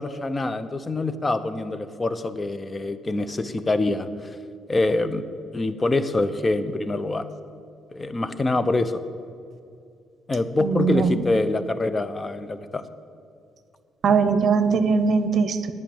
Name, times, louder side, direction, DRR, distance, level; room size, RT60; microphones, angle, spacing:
voice 1, 0.0-4.1 4.7-5.2 5.5-7.3 7.9-9.0 10.3-12.8, left 2 dB, 25° left, 13 dB, 0.7 m, -25 dB
voice 2, 10.6-11.2 14.0-15.7, right 5 dB, 55° right, 11 dB, 0.9 m, -21 dB
10.5 x 9.2 x 7.1 m, 2.4 s
cardioid pair, 90°, 0 cm